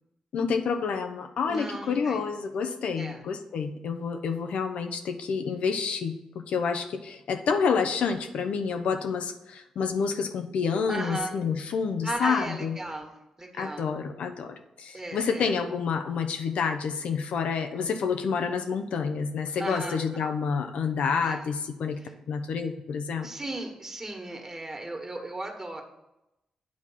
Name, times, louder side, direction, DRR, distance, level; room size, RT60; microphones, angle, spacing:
voice 1, 0.3-6.2 6.5-12.8 13.6-22.0 22.3-23.3, left 5 dB, 75° left, 7 dB, 0.6 m, -28 dB
voice 2, 1.5-2.2 3.0-3.2 10.9-11.3 12.0-13.9 14.9-15.5 19.6-20.0 21.2-21.4 22.0-22.1 23.2-25.8, right 2 dB, 25° right, 3 dB, 1.7 m, -36 dB
8.7 x 3.6 x 5.7 m, 0.90 s
supercardioid pair, 50°, 2 cm